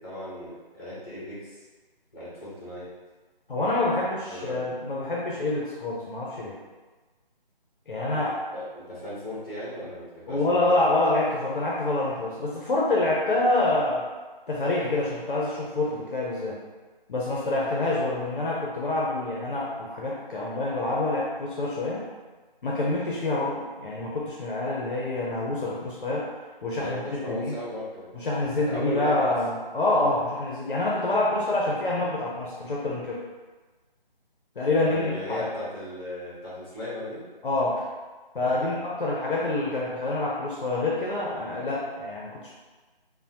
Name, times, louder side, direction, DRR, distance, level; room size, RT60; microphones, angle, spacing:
voice 1, 0.0-1.6 2.1-2.9 4.3-4.6 8.1-8.2 8.5-10.8 26.7-28.1 28.5-29.4 34.8-37.2 38.4-38.8, left 1 dB, 25° left, -9 dB, 1.1 m, -36 dB
voice 2, 3.5-6.5 7.9-8.3 10.3-14.0 14.5-16.6 17.1-22.1 22.6-26.3 26.6-27.5 28.1-33.2 34.6-35.5 37.4-37.8 38.3-42.5, left 2 dB, 60° left, -5 dB, 0.7 m, -27 dB
3.3 x 2.1 x 2.8 m, 1.3 s
figure-of-eight pair, 160°, 29 cm